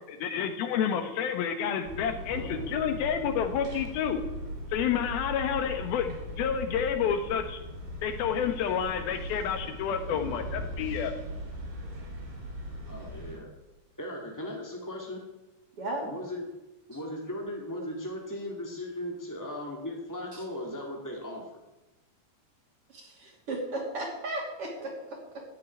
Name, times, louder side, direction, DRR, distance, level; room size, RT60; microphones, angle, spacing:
voice 1, 0.1-4.2 4.7-7.6 8.0-11.1, left 8 dB, 75° left, 7 dB, 3.1 m, -29 dB
sound 1, 1.8-13.4, equal, 65° right, 6.0 m, -39 dB
voice 2, 12.9-13.5 14.0-15.2 16.0-16.4 16.9-21.4, left 1 dB, 15° left, -1 dB, 0.7 m, -37 dB
voice 3, 22.9-25.4, right 2 dB, 40° right, 1 dB, 3.4 m, -35 dB
14.0 x 7.7 x 9.9 m, 1.0 s
omnidirectional pair, 4.4 m